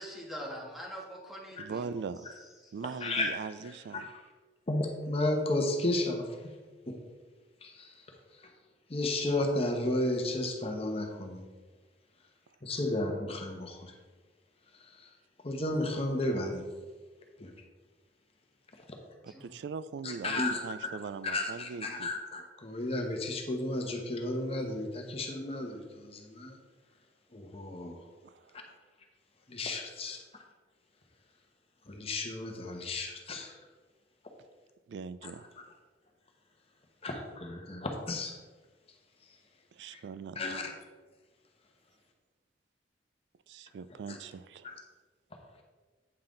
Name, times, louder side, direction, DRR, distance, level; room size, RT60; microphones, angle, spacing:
voice 1, 0.0-1.9 2.6-2.7 19.3-19.5, equal, ahead, -3 dB, 1.6 m, -43 dB
voice 2, 1.6-2.3 2.7-4.1 19.2-22.1 28.2-28.7 34.9-35.5 39.7-40.4 43.5-44.7, right 5 dB, 75° right, 15 dB, 0.3 m, -41 dB
voice 3, 4.7-6.3 6.9-7.0 7.6-7.9 8.9-11.4 12.6-13.9 14.9-15.0 15.4-16.6 17.4-17.5 20.0-20.6 21.2-26.5 27.3-28.0 29.5-30.2 31.9-33.6 37.0-38.3 39.9-40.0 40.4-40.7 44.1-44.2, left 1 dB, 35° left, 2 dB, 1.0 m, -33 dB
8.8 x 5.7 x 3.8 m, 1.3 s
head